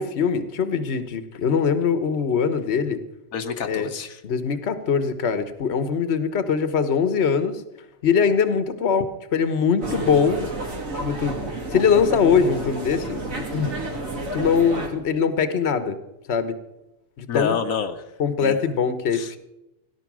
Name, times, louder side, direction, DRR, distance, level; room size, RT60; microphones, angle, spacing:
voice 1, 0.0-3.0 3.6-3.9 4.2-7.6 8.0-10.5 10.9-13.2 13.5-13.8 14.3-16.0 16.3-16.6 17.2-17.6 18.2-19.4, left 6 dB, 55° left, 11 dB, 1.3 m, -22 dB
voice 2, 3.3-4.2 17.3-18.1 18.4-18.6 19.1-19.3, left 6 dB, 85° left, 6 dB, 1.4 m, -28 dB
sound 1, 9.8-14.9, right 2 dB, 75° right, 2.7 m, -30 dB
17.5 x 11.5 x 6.2 m, 0.91 s
omnidirectional pair, 1.4 m